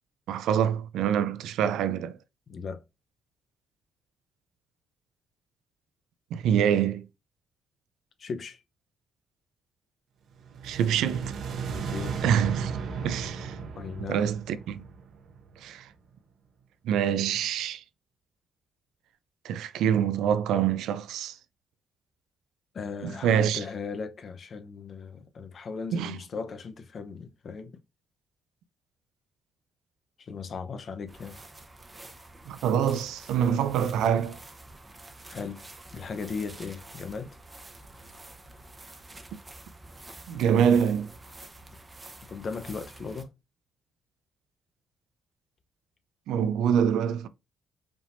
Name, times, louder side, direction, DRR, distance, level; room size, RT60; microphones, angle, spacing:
voice 1, 0.3-2.2 6.3-7.1 10.6-11.3 12.2-12.7 13.0-13.6 14.0-14.8 15.6-15.9 16.8-17.8 19.4-21.4 23.0-23.6 25.9-26.2 32.5-34.4 40.3-41.1 46.3-47.3, right 8 dB, 85° right, 0.4 m, -25 dB
voice 2, 2.5-2.8 8.2-8.6 11.9-12.2 13.7-14.3 17.4-17.8 22.7-27.8 30.2-31.4 35.3-35.6 35.9-37.4 42.3-43.3, left 5 dB, 50° left, 0.8 m, -37 dB
sound 1, 10.4-15.6, right 5 dB, 70° right, 0.9 m, -35 dB
sound 2, 31.1-43.2, right 2 dB, 20° right, 0.9 m, -48 dB
5.1 x 3.5 x 2.6 m
cardioid pair, 90°, 0 cm